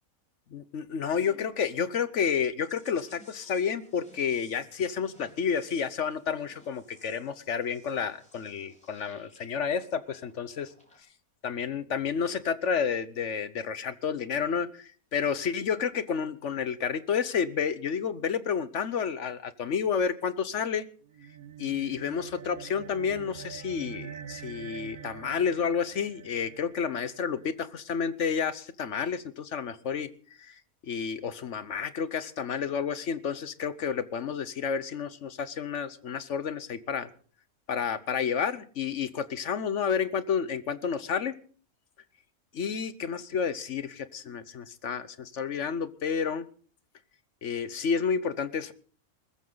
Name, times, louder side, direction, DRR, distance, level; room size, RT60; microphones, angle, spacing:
voice 1, 0.5-10.7 11.4-20.9 21.6-30.1 30.4-30.5 30.9-37.1 37.7-41.3 42.5-46.5 47.4-48.7, left 6 dB, 60° left, 15 dB, 1.1 m, -30 dB
sound 1, 2.6-11.0, equal, 5° left, 4.4 m, -59 dB
sound 2, 21.0-27.7, right 8 dB, 80° right, 1.5 m, -45 dB
21.0 x 14.0 x 3.9 m, 0.43 s
omnidirectional pair, 1.5 m